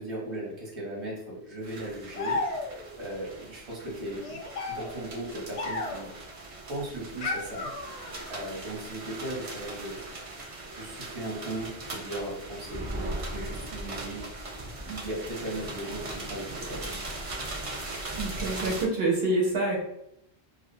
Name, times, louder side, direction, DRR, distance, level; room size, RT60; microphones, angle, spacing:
voice 1, 0.0-2.4 2.9-4.4 4.7-6.1 6.7-7.7 8.3-10.0 10.7-14.3 14.8-17.0, right 1 dB, 30° right, -4 dB, 0.8 m, -37 dB
sound 1, 1.6-18.8, right 2 dB, 45° right, 0.4 m, -39 dB
sound 2, 2.1-3.0 4.2-6.2 7.2-8.3, left 3 dB, 50° left, 0.5 m, -34 dB
voice 2, 18.2-19.8, right 2 dB, 75° right, -2 dB, 0.9 m, -26 dB
2.4 x 2.0 x 2.6 m, 0.76 s
omnidirectional pair, 1.0 m